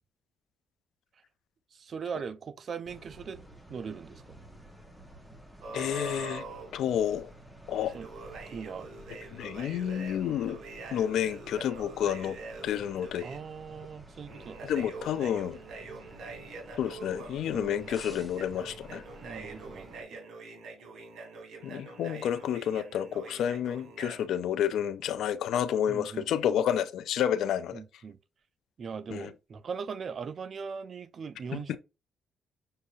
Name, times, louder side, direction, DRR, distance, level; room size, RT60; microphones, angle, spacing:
voice 1, 1.7-3.4 3.7-4.2 7.9-8.1 8.5-8.9 13.2-14.9 17.5-17.9 19.2-20.2 25.9-26.6 27.7-28.2 28.8-31.8, right 6 dB, 50° right, 0.5 m, -40 dB
sound 1, 2.8-20.0, right 1 dB, 5° right, 1.1 m, -51 dB
sound 2, 5.6-6.7 7.7-13.4 14.3-24.3, right 3 dB, 75° right, 1.8 m, -45 dB
voice 2, 5.7-6.4 6.7-7.3 7.7-7.9 9.3-10.6 10.9-12.4 12.6-13.3 14.6-15.6 16.8-19.0 21.6-27.8 29.1-29.3 31.5-31.8, left 9 dB, 75° left, 0.4 m, -30 dB
6.5 x 2.7 x 2.5 m
cardioid pair, 90°, 0 cm